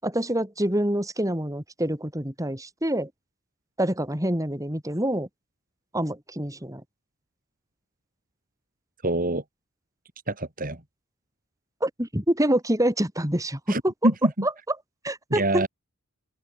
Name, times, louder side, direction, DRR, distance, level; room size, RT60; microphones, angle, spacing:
voice 1, 0.0-3.1 3.8-5.3 5.9-6.8 11.8-13.9 14.4-14.5 15.0-15.7, right 1 dB, 15° right, 5.1 m, -26 dB
voice 2, 9.0-9.4 10.3-10.8 13.7-14.5 15.3-15.7, right 1 dB, 40° right, 4.3 m, -25 dB
open air
head